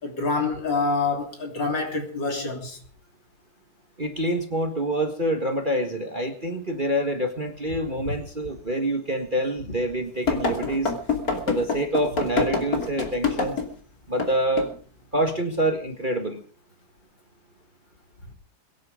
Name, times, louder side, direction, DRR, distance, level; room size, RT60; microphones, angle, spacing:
voice 1, 0.0-2.8, left 3 dB, 55° left, 4.0 m, -26 dB
voice 2, 4.0-10.9 11.5-13.6 14.1-14.7 15.1-16.4, right 1 dB, 25° right, 1.7 m, -26 dB
sound 1, 10.3-13.7 14.2-14.3 14.6-14.8, left 4 dB, 40° left, 3.2 m, -25 dB
23.0 x 10.5 x 5.1 m
omnidirectional pair, 2.4 m